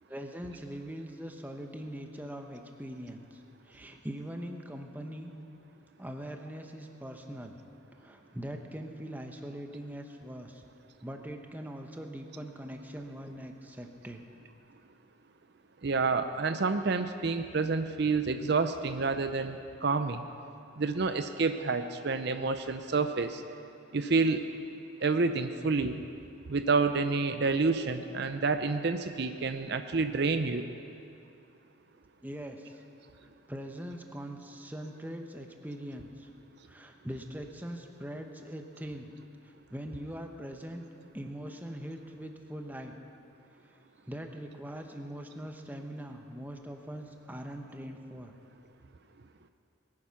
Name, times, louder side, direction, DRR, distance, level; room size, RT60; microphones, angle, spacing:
voice 1, 0.1-5.3 6.0-7.6 8.0-10.6 11.0-14.2 32.2-32.8 33.5-36.3 36.7-39.1 39.4-40.8 41.1-43.0 43.6-43.8 44.1-48.3, equal, 10° right, 4 dB, 0.8 m, -42 dB
voice 2, 15.8-20.3 20.8-23.4 23.9-24.4 25.0-26.0 26.5-30.7, right 4 dB, 55° right, 9 dB, 0.6 m, -29 dB
21.0 x 9.7 x 5.8 m, 2.5 s
head